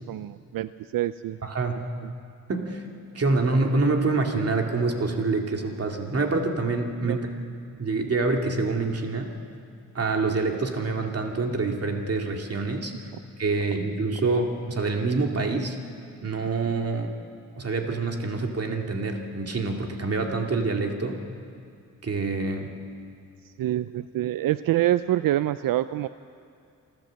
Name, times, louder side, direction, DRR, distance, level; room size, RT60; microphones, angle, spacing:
voice 1, 0.1-1.4 7.0-7.2 23.4-26.1, right 13 dB, 85° right, 14 dB, 0.5 m, -26 dB
voice 2, 1.4-1.9 2.5-2.8 3.1-7.3 7.8-9.3 9.9-13.1 13.4-15.8 16.2-17.2 17.6-21.2 22.0-22.7, right 3 dB, 45° right, 2 dB, 2.3 m, -26 dB
28.0 x 12.5 x 7.5 m, 2.5 s
cardioid pair, 90°, 33 cm